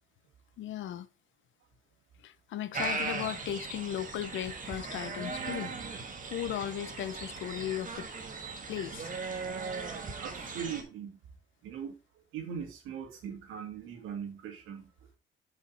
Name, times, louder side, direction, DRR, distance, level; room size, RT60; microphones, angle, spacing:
voice 1, 0.6-1.1 2.2-5.7 6.3-8.1 8.7-9.1, left 11 dB, 75° left, 0.8 m, -36 dB
sound 1, 2.7-10.8, right 4 dB, 40° right, 1.7 m, -38 dB
voice 2, 10.2-11.2 11.6-14.9, right 8 dB, 90° right, 2.1 m, -40 dB
7.0 x 5.4 x 4.4 m
cardioid pair, 90°, 20 cm